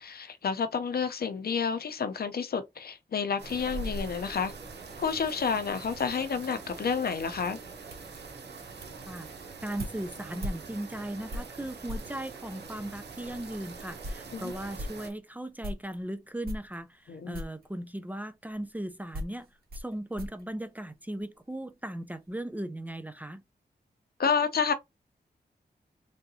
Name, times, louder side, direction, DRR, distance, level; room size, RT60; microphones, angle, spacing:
voice 1, 0.0-4.5 5.0-7.6 14.3-14.5 17.1-17.4 24.2-24.7, left 6 dB, 65° left, 0.6 m, -30 dB
sound 1, 3.4-15.1, right 3 dB, 85° right, 1.0 m, -43 dB
sound 2, 5.8-12.2 12.9-13.0 13.5-13.6 13.8-16.0 16.4-17.1 17.3-17.7 18.5-21.4 21.7-22.3, equal, 65° right, 1.9 m, -42 dB
voice 2, 9.6-19.5 19.7-23.4, right 1 dB, 10° right, 0.5 m, -37 dB
3.8 x 3.4 x 2.7 m
wide cardioid pair, 105°, 17 cm